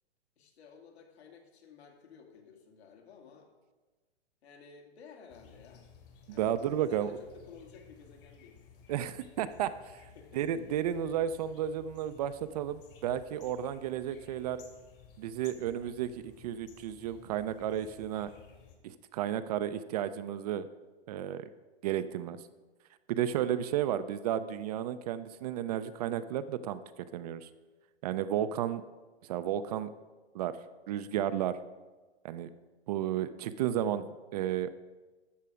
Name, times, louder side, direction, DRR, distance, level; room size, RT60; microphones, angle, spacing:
voice 1, 0.4-3.5 4.4-5.8 6.3-6.5 6.8-8.6 10.1-10.6, left 5 dB, 70° left, 2 dB, 2.4 m, -54 dB
sound 1, 5.3-18.8, left 7 dB, 55° left, 2.5 m, -57 dB
voice 2, 6.4-7.1 8.9-10.1 10.3-14.6 15.2-18.3 18.8-20.7 21.1-21.5 21.8-22.4 23.1-27.5 28.0-28.8 29.2-29.9 30.3-30.6 30.9-31.6 32.2-32.5 32.9-34.8, right 10 dB, 40° right, 12 dB, 0.4 m, -33 dB
12.5 x 7.5 x 4.9 m, 1.3 s
hypercardioid pair, 130°, 33 cm